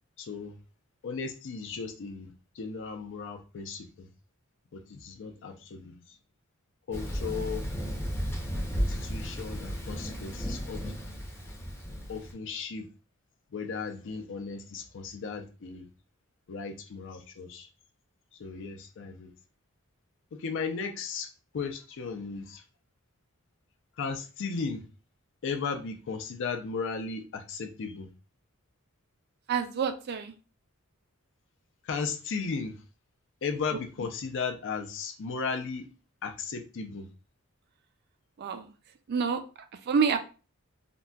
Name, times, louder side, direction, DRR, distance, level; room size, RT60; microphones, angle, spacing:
voice 1, 0.2-0.6 1.0-4.1 4.7-6.2 6.9-7.7 8.9-10.9 12.1-12.9 13.5-15.9 16.5-17.7 18.4-19.3 20.3-21.3 21.5-22.6 24.0-24.8 25.4-28.1 31.8-32.8 33.4-35.9 36.2-37.1, left 5 dB, 60° left, 0.5 m, -36 dB
Thunder, 6.9-12.3, equal, 10° left, 0.6 m, -34 dB
voice 2, 29.5-30.3 38.4-38.7 39.1-39.4 39.8-40.2, right 6 dB, 50° right, 0.4 m, -27 dB
3.8 x 2.2 x 2.2 m
head